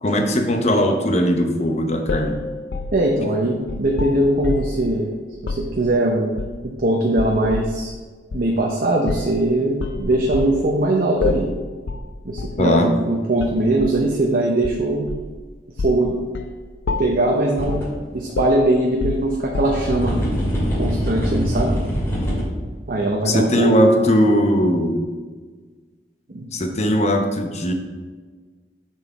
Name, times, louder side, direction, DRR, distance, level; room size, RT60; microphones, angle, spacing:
voice 1, 0.0-2.4 12.6-12.9 23.2-25.0 26.5-27.7, equal, 40° left, 5 dB, 0.8 m, -19 dB
sound 1, 2.1-4.8 5.4-5.7 6.4-6.8 7.2-7.8 8.3-8.5 9.1-9.4 9.8-10.6 11.2-11.6 11.9-12.1 12.4-12.6 13.4-14.0 14.6-15.4 15.8-16.0 16.3-16.5 16.9-17.3 17.7-18.0 18.4-20.0, left 3 dB, 85° left, 0.5 m, -28 dB
voice 2, 2.9-5.1 5.4-6.3 6.8-7.9 8.3-11.4 12.2-15.1 15.8-16.2 17.0-17.8 18.1-20.2 20.8-21.7 22.9-24.0 26.3-26.4, right 1 dB, 55° right, -1 dB, 0.7 m, -20 dB
sound 2, 17.6-17.9 18.3-18.4 19.5-22.4, equal, 15° left, 2.3 m, -23 dB
6.8 x 4.6 x 4.5 m, 1.4 s
head